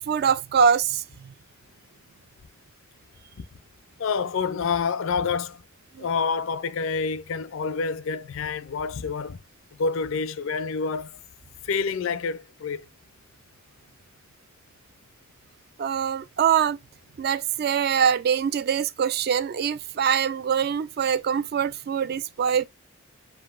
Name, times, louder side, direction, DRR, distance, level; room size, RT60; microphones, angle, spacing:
voice 1, 0.0-1.3 6.0-6.1 15.8-16.8 17.2-22.6, right 7 dB, 45° right, 0.3 m, -24 dB
voice 2, 4.0-5.6 6.0-9.4 9.8-11.1 11.6-12.9, left 5 dB, 65° left, 0.4 m, -28 dB
7.6 x 2.6 x 2.3 m
head